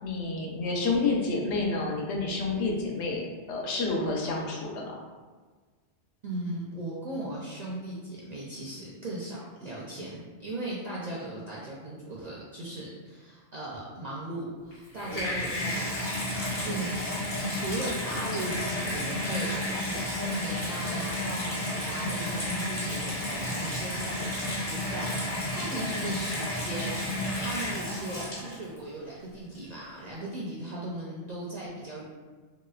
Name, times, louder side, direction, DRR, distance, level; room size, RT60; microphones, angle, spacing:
voice 1, 0.0-5.0, left 3 dB, 75° left, -1 dB, 0.9 m, -29 dB
voice 2, 6.2-17.0 17.4-32.0, right 1 dB, 55° right, -6 dB, 0.4 m, -38 dB
Water tap faucet / Bathtub (filling or washing), 14.7-28.8 29.5-29.6, left 1 dB, 45° left, 1.3 m, -31 dB
3.0 x 2.8 x 2.3 m, 1.4 s
omnidirectional pair, 1.2 m